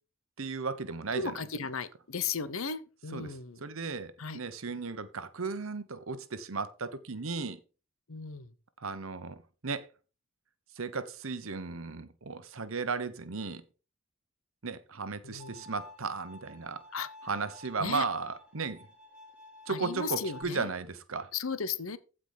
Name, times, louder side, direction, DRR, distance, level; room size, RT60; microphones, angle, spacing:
voice 1, 0.4-1.3 3.1-3.3 3.6-7.6 8.8-9.9 10.8-13.6 14.6-16.8 17.3-18.9 19.7-21.3, right 4 dB, 70° right, 1.0 m, -35 dB
voice 2, 1.1-3.6 4.2-4.4 8.1-8.5 15.2-15.7 16.9-17.1 17.8-18.1 19.7-20.7 21.3-22.0, left 5 dB, 70° left, 0.9 m, -35 dB
Bowed string instrument, 15.4-20.4, left 1 dB, 5° right, 4.5 m, -51 dB
15.0 x 5.0 x 4.0 m
head